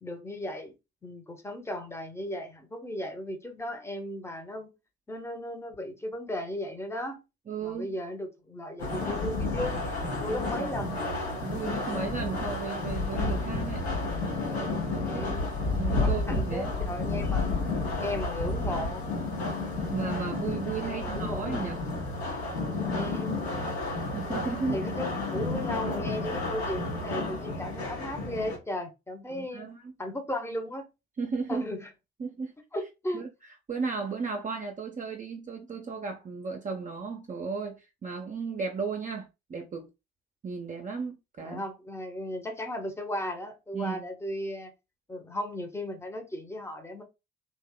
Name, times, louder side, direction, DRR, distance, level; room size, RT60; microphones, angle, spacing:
voice 1, 0.0-0.7 1.0-4.7 5.1-7.2 7.6-9.8 10.2-11.1 15.0-15.6 16.0-17.5 18.0-19.0 20.8-21.4 22.9-23.4 24.7-29.7 30.0-30.8 31.5-31.9 32.7-33.2 41.4-44.7 45.1-47.0, left 1 dB, 10° left, 0.8 m, -36 dB
voice 2, 7.5-7.9 10.3-11.0 11.4-13.9 15.1-15.4 15.7-16.7 19.9-21.8 24.1-24.8 29.3-29.9 31.2-31.7 32.2-32.5 33.1-33.3 33.7-39.9 40.4-41.6 43.7-44.0, right 5 dB, 25° right, 0.6 m, -34 dB
sound 1, 8.8-28.6, left 2 dB, 75° left, 0.9 m, -31 dB
2.8 x 2.2 x 3.7 m
figure-of-eight pair, 50°, 32 cm